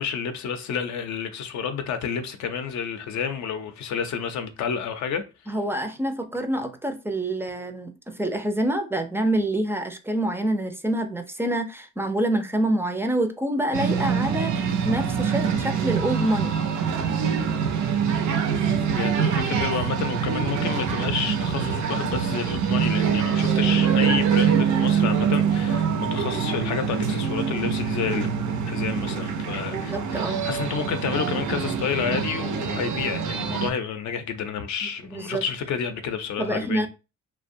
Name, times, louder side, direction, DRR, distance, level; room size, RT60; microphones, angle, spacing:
voice 1, 0.0-5.5 18.9-28.3 28.7-36.9, left 7 dB, 70° left, 0.5 m, -30 dB
voice 2, 5.5-16.5 29.7-30.5 35.0-35.4 36.4-36.9, right 1 dB, 10° right, 0.3 m, -26 dB
sound 1, 13.7-33.7, right 7 dB, 75° right, 0.5 m, -24 dB
2.6 x 2.1 x 2.5 m
cardioid pair, 90°, 30 cm